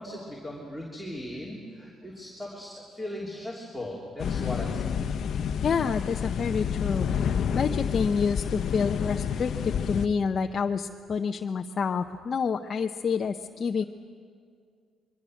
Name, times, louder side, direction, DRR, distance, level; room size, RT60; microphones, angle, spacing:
voice 1, 0.0-4.9, left 1 dB, 5° right, -3 dB, 3.1 m, -38 dB
sound 1, 4.2-10.1, left 7 dB, 60° left, 0.9 m, -29 dB
voice 2, 5.6-13.8, left 6 dB, 40° left, 4 dB, 0.6 m, -28 dB
25.5 x 22.5 x 6.4 m, 2.1 s
cardioid pair, 130°, 0 cm